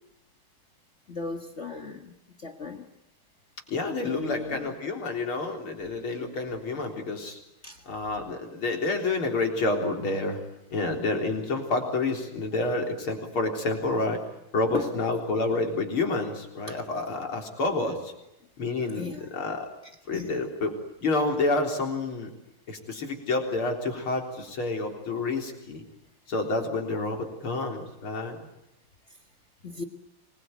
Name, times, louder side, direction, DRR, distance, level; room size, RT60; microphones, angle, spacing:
voice 1, 1.1-2.1 2.4-2.9 4.0-4.7 7.6-7.8 14.7-14.9 16.7-16.8 19.0-19.3 20.1-20.4 29.6-29.8, left 4 dB, 35° left, 6 dB, 1.7 m, -36 dB
voice 2, 3.7-7.4 7.9-10.4 10.7-14.2 14.5-18.1 18.6-19.7 20.1-20.7 21.0-22.3 22.7-25.8 26.3-28.5, left 3 dB, 80° left, 3 dB, 4.6 m, -29 dB
26.5 x 21.0 x 9.3 m, 0.88 s
omnidirectional pair, 2.3 m